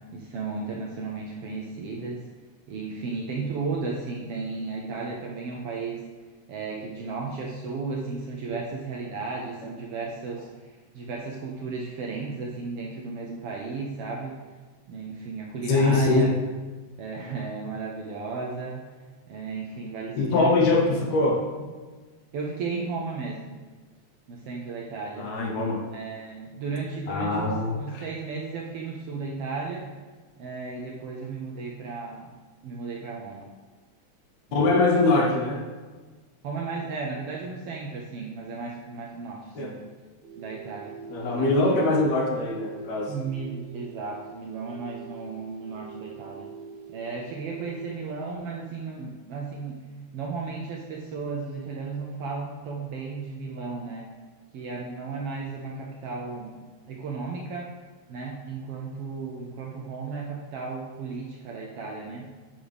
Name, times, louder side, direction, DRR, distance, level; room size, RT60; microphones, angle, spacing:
voice 1, 0.1-2.2 2.7-6.0 6.5-14.4 14.9-16.3 17.0-18.9 19.3-20.8 22.3-23.5 24.3-25.3 25.9-29.8 30.4-32.4 32.6-33.5 34.5-34.7 36.4-39.7 40.4-40.9 41.2-41.5 43.1-46.5 46.9-49.8 50.1-54.0 54.5-57.7 58.1-62.3, right 4 dB, 70° right, -2 dB, 1.4 m, -34 dB
voice 2, 15.7-16.3 20.2-21.7 25.2-25.9 27.1-28.1 34.5-35.6 39.6-39.8 41.1-43.1, left 3 dB, 70° left, 0 dB, 2.1 m, -23 dB
sound 1, 40.2-48.4, right 6 dB, 50° right, 1.7 m, -44 dB
8.6 x 6.5 x 3.4 m, 1.4 s
omnidirectional pair, 3.4 m